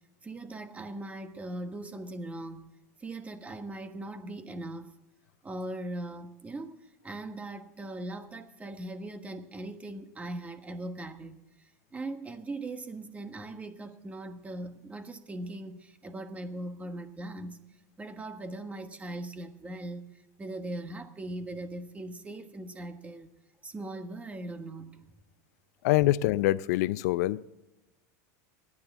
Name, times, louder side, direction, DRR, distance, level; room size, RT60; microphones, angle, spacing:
voice 1, 0.2-2.7 3.0-4.9 5.4-17.6 18.0-23.3 23.6-25.1, right 2 dB, 15° right, 1.3 m, -40 dB
voice 2, 25.8-27.4, left 16 dB, 70° left, 0.5 m, -25 dB
25.5 x 9.8 x 3.6 m
supercardioid pair, 125°, 9 cm